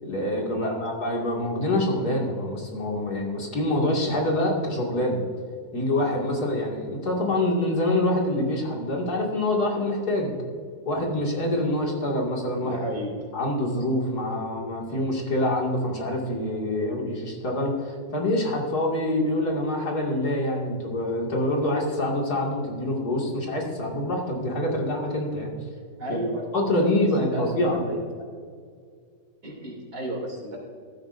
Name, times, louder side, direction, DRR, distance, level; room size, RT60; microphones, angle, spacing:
voice 1, 0.0-5.2 5.7-10.4 10.9-12.8 13.3-25.5 26.1-26.2 26.5-27.8, left 1 dB, 80° left, -2 dB, 2.8 m, -26 dB
voice 2, 12.6-13.1 26.0-27.0 27.2-28.0 29.4-30.6, right 1 dB, 80° right, -1 dB, 3.6 m, -33 dB
15.0 x 13.5 x 2.6 m, 2.1 s
omnidirectional pair, 1.7 m